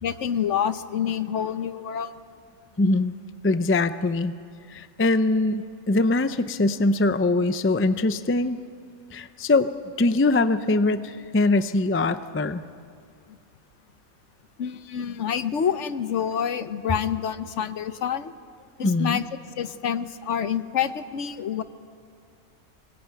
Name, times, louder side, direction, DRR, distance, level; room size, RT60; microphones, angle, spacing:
voice 1, 0.0-2.1 14.6-18.3 18.8-19.2 19.6-21.6, left 8 dB, 65° left, 12 dB, 1.1 m, -27 dB
voice 2, 2.8-3.1 3.4-4.3 4.7-8.6 9.1-9.7 10.0-12.6 18.8-19.2, left 2 dB, 20° left, 11 dB, 0.3 m, -22 dB
24.0 x 20.5 x 9.1 m, 2.2 s
omnidirectional pair, 1.4 m